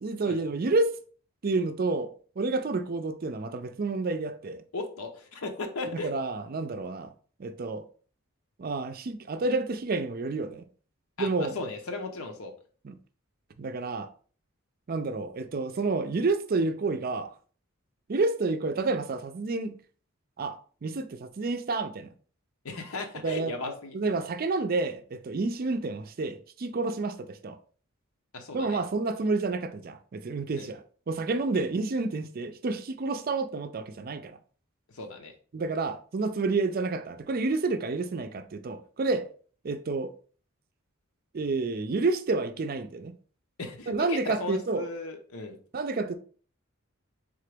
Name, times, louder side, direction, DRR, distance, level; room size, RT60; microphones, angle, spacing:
voice 1, 0.0-0.9 1.4-2.1 2.4-4.6 5.9-7.1 7.4-7.9 8.6-10.7 11.2-11.6 12.8-12.9 13.6-14.1 14.9-17.3 18.1-19.7 20.4-22.1 23.2-23.6 23.9-27.6 28.5-34.4 35.5-39.3 39.6-40.1 41.3-43.2 43.9-44.9 45.7-46.1, right 3 dB, 45° right, 0.4 m, -29 dB
voice 2, 4.7-6.1 11.2-12.5 22.6-24.0 28.3-28.8 30.5-30.7 31.6-31.7 34.9-35.3 43.6-45.6, left 3 dB, 90° left, 0.8 m, -36 dB
3.8 x 3.6 x 3.4 m
head